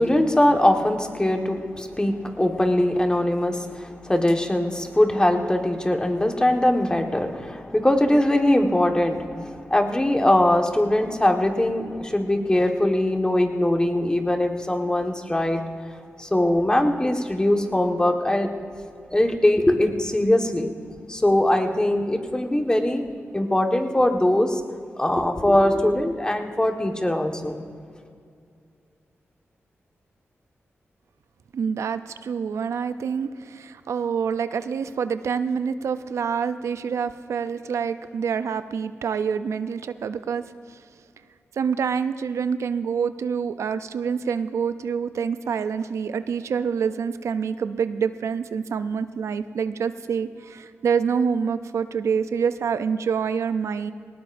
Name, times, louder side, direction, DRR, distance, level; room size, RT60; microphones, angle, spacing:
voice 1, 0.0-15.6 16.2-18.5 19.1-20.7 21.1-23.0 23.3-24.6 25.0-27.6, left 1 dB, 15° left, 3 dB, 1.5 m, -21 dB
voice 2, 31.5-40.8 41.6-53.9, right 6 dB, 85° right, 11 dB, 0.4 m, -26 dB
19.0 x 18.5 x 2.6 m, 2.3 s
cardioid pair, 60°, 5 cm